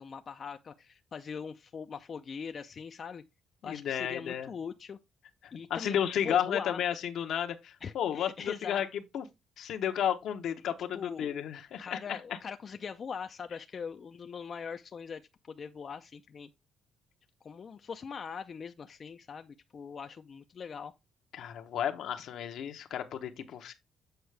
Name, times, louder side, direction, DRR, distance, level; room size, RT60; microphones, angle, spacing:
voice 1, 0.0-3.2 3.6-5.0 5.5-6.0 6.2-6.8 7.8-8.8 10.6-11.3 11.8-15.2 15.5-16.5 17.4-20.9, left 6 dB, 45° left, 0.5 m, -41 dB
voice 2, 3.6-4.5 5.4-8.9 9.1-9.2 9.6-12.2 21.3-23.7, left 9 dB, 75° left, 0.9 m, -32 dB
7.9 x 4.7 x 3.3 m
cardioid pair, 90°, 0 cm